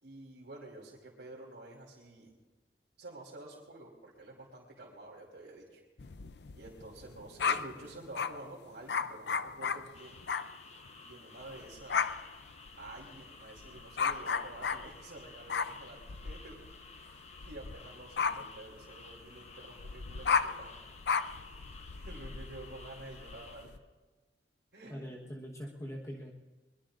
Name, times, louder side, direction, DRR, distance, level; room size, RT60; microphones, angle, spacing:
voice 1, 0.0-2.3 3.0-5.8 6.5-10.2 11.0-12.1 12.8-16.6 17.3-20.7 21.7-23.7 24.7-25.2, right 2 dB, 75° right, -6 dB, 3.1 m, -49 dB
sound 1, 6.0-8.4 8.9-10.6 10.9-11.1 11.4-23.8, left 5 dB, 65° left, 0.5 m, -35 dB
sound 2, 9.9-23.7, left 4 dB, 35° left, 1.3 m, -54 dB
voice 2, 24.9-26.3, equal, 15° left, -2 dB, 1.2 m, -42 dB
22.5 x 22.0 x 2.6 m, 1.2 s
head